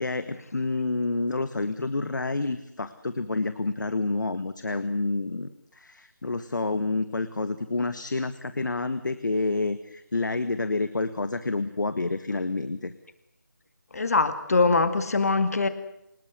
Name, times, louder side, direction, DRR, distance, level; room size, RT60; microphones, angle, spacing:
voice 1, 0.0-12.9, left 3 dB, 70° left, 11 dB, 1.8 m, -29 dB
voice 2, 13.9-15.7, left 3 dB, 50° left, 11 dB, 2.0 m, -22 dB
25.5 x 21.0 x 8.0 m, 0.80 s
figure-of-eight pair, 175°, 11 cm